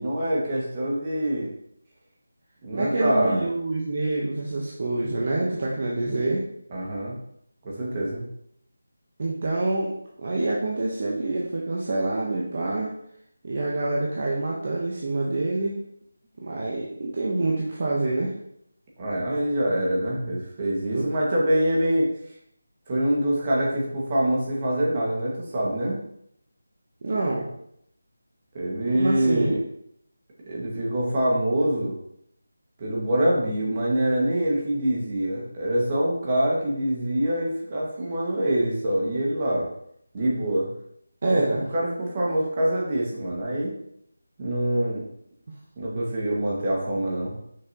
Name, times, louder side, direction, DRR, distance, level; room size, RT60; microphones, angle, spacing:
voice 1, 0.0-1.5 2.6-3.4 6.7-7.1 7.6-8.2 19.0-22.1 22.9-26.0 28.5-29.6 30.5-31.9 32.8-39.7 40.1-40.7 41.2-41.4 41.7-43.7 44.4-45.1 45.8-47.3, right 1 dB, 30° right, -4 dB, 1.8 m, -25 dB
voice 2, 2.7-6.4 9.2-9.9 10.2-12.9 13.4-15.8 16.4-18.3 20.9-21.0 27.0-27.5 29.0-29.5 41.2-41.7, right 2 dB, 45° right, -3 dB, 1.0 m, -26 dB
6.4 x 5.7 x 2.9 m, 0.73 s
figure-of-eight pair, 165°, 0 cm